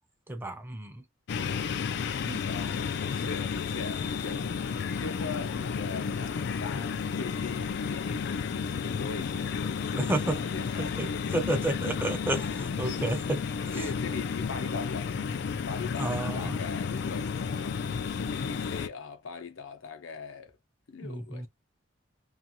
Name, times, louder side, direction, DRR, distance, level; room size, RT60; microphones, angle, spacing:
voice 1, 0.3-1.0 2.2-2.5 9.9-10.4 10.8-11.1 11.3-13.4 13.7-13.9 16.0-16.6 21.0-21.5, right 2 dB, 10° right, 0.4 m, -31 dB
voice 2, 1.3-1.7 2.4-11.4 11.9-12.0 12.3-12.4 12.8-12.9 13.7-15.3 15.7-20.5 20.9-21.5, left 4 dB, 85° left, 0.7 m, -41 dB
sound 1, 1.3-18.9, left 6 dB, 55° left, 0.3 m, -32 dB
2.5 x 2.4 x 2.8 m
head